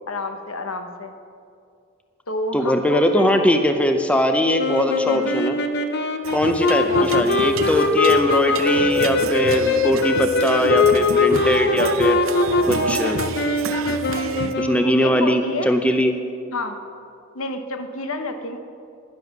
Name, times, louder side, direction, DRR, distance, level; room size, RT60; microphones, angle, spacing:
voice 1, 0.1-1.1 2.3-3.5 5.1-5.4 6.8-7.1 15.0-15.7 16.5-16.8 17.3-18.6, left 2 dB, 85° left, 6 dB, 1.0 m, -29 dB
voice 2, 2.5-5.6 6.3-12.2 12.7-13.2 13.9-14.0 14.6-16.1, equal, 5° left, 6 dB, 0.5 m, -21 dB
sound 1, 4.6-15.1, left 3 dB, 50° left, 0.7 m, -21 dB
sound 2, 6.2-14.5, right 3 dB, 75° right, 0.7 m, -28 dB
11.0 x 10.5 x 6.0 m, 2.4 s
head